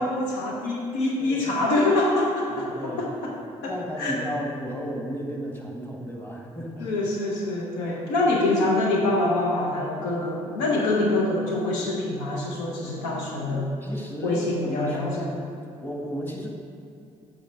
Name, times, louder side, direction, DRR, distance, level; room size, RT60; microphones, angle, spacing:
voice 1, 0.0-3.3 3.6-4.2 6.8-13.7 14.2-15.3, left 2 dB, 90° left, -1 dB, 0.7 m, -25 dB
voice 2, 2.5-3.1 3.7-6.9 13.1-15.4 15.8-16.5, equal, 10° left, -1 dB, 1.7 m, -34 dB
7.8 x 3.8 x 5.1 m, 2.5 s
hypercardioid pair, 45°, 16 cm